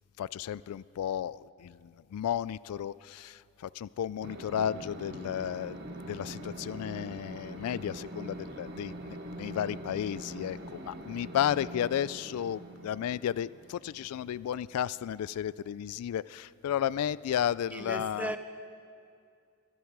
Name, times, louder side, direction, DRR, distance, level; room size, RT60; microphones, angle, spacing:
voice 1, 0.2-5.8 6.1-18.3, left 9 dB, 85° left, 18 dB, 0.3 m, -33 dB
sound 1, 4.2-15.3, right 1 dB, 50° right, 1.4 m, -44 dB
voice 2, 17.7-18.4, right 1 dB, 5° right, 8 dB, 0.6 m, -36 dB
21.5 x 12.0 x 4.7 m, 2.4 s
head